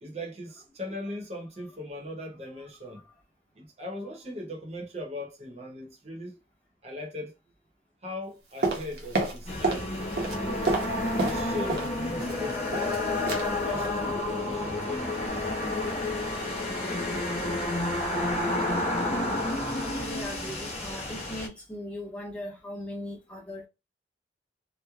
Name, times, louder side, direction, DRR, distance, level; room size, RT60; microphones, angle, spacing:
voice 1, 0.0-3.0 3.5-6.4 6.8-7.3 8.0-9.9 10.3-10.7 11.1-13.0 13.6-15.9, left 1 dB, 35° right, 0.8 m, -39 dB
voice 2, 2.8-3.2 19.2-23.7, left 1 dB, 5° left, 0.8 m, -39 dB
sound 1, 8.6-9.9 10.1-11.9 12.2-13.0 13.3-13.5 13.8-14.0 14.3-14.6 14.8-14.9, right 3 dB, 60° right, 0.8 m, -30 dB
sound 2, 9.5-21.5, left 2 dB, 35° left, 0.9 m, -30 dB
3.0 x 2.1 x 2.3 m
head